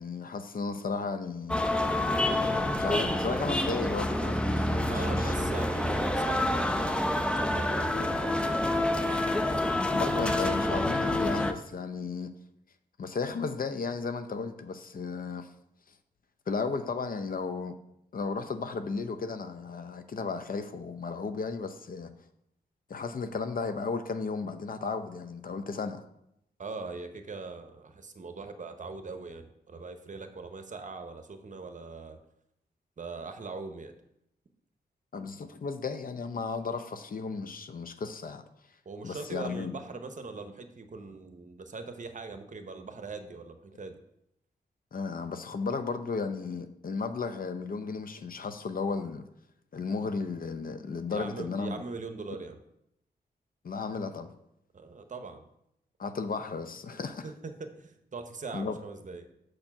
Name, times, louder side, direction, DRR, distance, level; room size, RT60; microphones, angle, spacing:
voice 1, 0.0-1.6 2.8-5.5 9.9-12.3 13.0-15.5 16.5-17.8 18.1-22.1 22.9-26.0 35.1-38.4 39.0-39.7 44.9-49.2 49.7-51.8 53.6-54.3 56.0-57.3 58.5-58.8, left 4 dB, 55° left, 0.6 m, -34 dB
sound 1, 1.5-11.5, left 1 dB, 5° left, 0.6 m, -27 dB
voice 2, 4.9-8.7 26.6-32.2 33.0-33.9 38.8-44.0 51.1-52.6 54.7-55.5 56.9-59.3, right 4 dB, 45° right, 0.9 m, -41 dB
6.5 x 4.4 x 5.9 m
cardioid pair, 75°, 17 cm